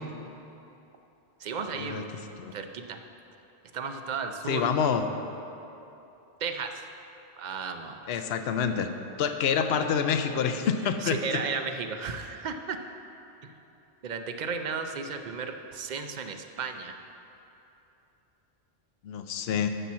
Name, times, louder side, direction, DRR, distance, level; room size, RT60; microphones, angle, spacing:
voice 1, 1.4-2.1 2.5-3.0 3.7-4.8 6.4-6.7 7.4-8.1 11.0-12.8 14.0-17.0, right 5 dB, 50° right, 6 dB, 0.7 m, -34 dB
voice 2, 4.5-5.1 8.1-8.9 9.2-11.4 19.0-19.7, left 7 dB, 75° left, 8 dB, 0.8 m, -27 dB
12.5 x 4.4 x 7.2 m, 2.9 s
omnidirectional pair, 1.1 m